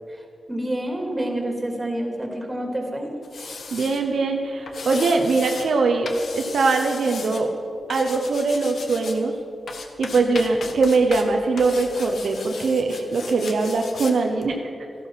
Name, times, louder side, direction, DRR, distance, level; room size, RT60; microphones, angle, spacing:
voice 1, 0.5-3.1, right 1 dB, 20° right, 2 dB, 2.8 m, -28 dB
sound 1, 3.2-4.0 4.7-5.7 6.1-7.4 7.9-9.2 9.7-11.3 11.6-14.1 14.4-14.5, left 4 dB, 70° left, 1.3 m, -36 dB
voice 2, 3.7-7.5 7.9-9.3 10.0-14.7, right 3 dB, 80° right, 3 dB, 1.0 m, -22 dB
13.5 x 11.5 x 5.8 m, 2.6 s
cardioid pair, 60°, 0 cm